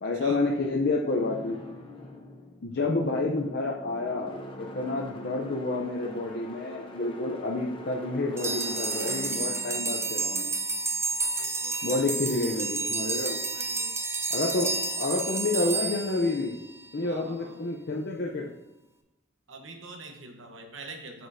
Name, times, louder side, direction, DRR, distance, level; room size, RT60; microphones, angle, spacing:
voice 1, 0.0-1.6 2.6-10.5 11.8-13.4 14.3-16.6 16.9-18.5, left 2 dB, 55° left, -2 dB, 0.6 m, -29 dB
sound 1, 1.1-11.1, left 1 dB, 25° left, 0.8 m, -44 dB
sound 2, 8.4-16.9, right 3 dB, 15° right, 0.4 m, -30 dB
voice 2, 11.4-12.0 13.5-13.9 17.0-17.7 19.5-21.3, right 3 dB, 85° right, 3 dB, 1.1 m, -45 dB
7.9 x 6.0 x 2.7 m, 0.94 s
head